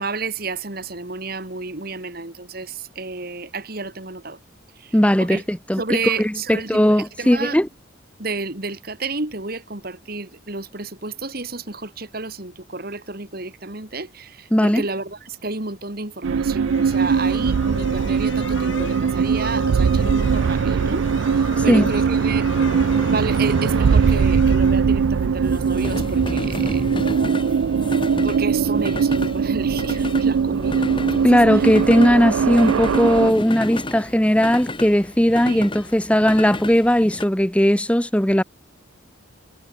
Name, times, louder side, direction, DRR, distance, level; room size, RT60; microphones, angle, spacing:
voice 1, 0.0-4.4 4.8-5.4 5.8-7.6 8.2-22.5 23.1-26.9 28.2-31.7 35.5-35.7, right 3 dB, 50° right, 2.3 m, -31 dB
voice 2, 4.9-5.8 6.2-7.7 14.5-14.8 21.7-21.9 31.2-38.4, equal, 5° left, 0.9 m, -17 dB
sound 1, 16.2-33.3, right 6 dB, 80° right, 0.4 m, -20 dB
sound 2, 16.6-25.4, left 3 dB, 70° left, 7.4 m, -37 dB
sound 3, 18.6-37.3, left 1 dB, 25° left, 3.9 m, -34 dB
head